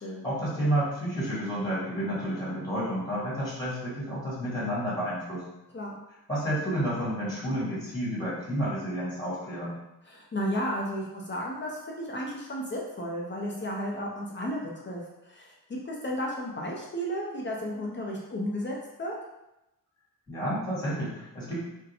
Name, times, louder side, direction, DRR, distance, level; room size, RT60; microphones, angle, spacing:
voice 1, 0.0-5.4 6.3-9.8 20.3-21.6, equal, 10° left, -8 dB, 1.5 m, -30 dB
voice 2, 10.0-15.5 15.8-19.1, equal, 30° left, -3 dB, 0.6 m, -33 dB
2.7 x 2.2 x 4.0 m, 0.90 s
wide cardioid pair, 120°, 37 cm